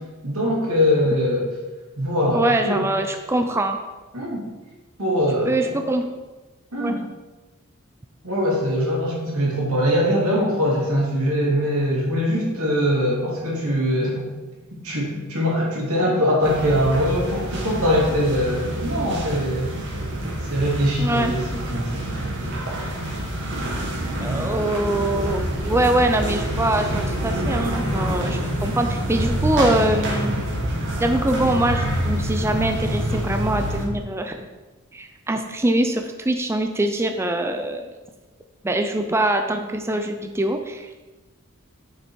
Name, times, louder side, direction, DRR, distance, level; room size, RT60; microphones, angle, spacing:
voice 1, 0.2-1.5 2.0-2.9 4.1-4.5 5.0-5.8 6.7-7.0 8.2-14.3 14.8-19.8 20.5-22.3 24.1-24.6, equal, 90° right, -4 dB, 2.7 m, -22 dB
voice 2, 2.3-3.8 5.5-6.0 6.8-6.9 21.0-21.3 24.2-30.3 31.0-34.5 34.9-37.9 38.6-40.9, right 1 dB, 10° right, 5 dB, 0.4 m, -23 dB
sound 1, 16.4-33.8, right 1 dB, 60° right, 1.8 m, -26 dB
6.8 x 6.6 x 4.6 m, 1.2 s
head